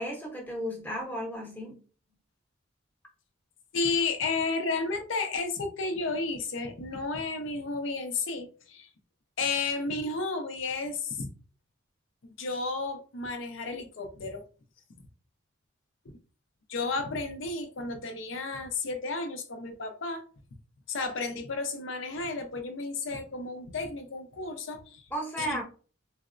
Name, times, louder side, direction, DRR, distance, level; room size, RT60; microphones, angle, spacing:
voice 1, 0.0-1.8 25.1-25.6, equal, 10° left, 0.7 m, -34 dB
voice 2, 3.7-8.9 9.4-11.3 12.2-14.4 15.0-15.1 16.7-20.2 20.9-25.0 25.4-25.6, left 3 dB, 70° left, 0.6 m, -32 dB
3.9 x 2.0 x 2.4 m
head